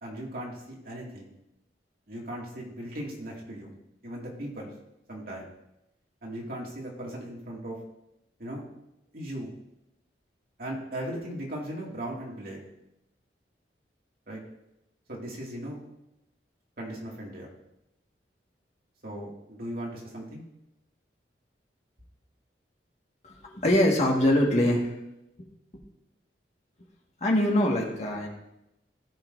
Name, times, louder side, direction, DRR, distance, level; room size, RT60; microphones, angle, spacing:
voice 1, 0.0-1.3 2.1-3.7 4.0-4.7 5.1-5.5 6.2-7.8 8.4-8.6 9.1-9.5 10.6-12.6 14.3-14.4 15.1-15.8 16.8-17.5 19.0-20.4, right 1 dB, 55° right, -3 dB, 2.3 m, -37 dB
voice 2, 23.2-24.9 27.2-28.3, left 1 dB, 40° left, -1 dB, 1.7 m, -23 dB
17.5 x 5.8 x 2.6 m, 0.87 s
head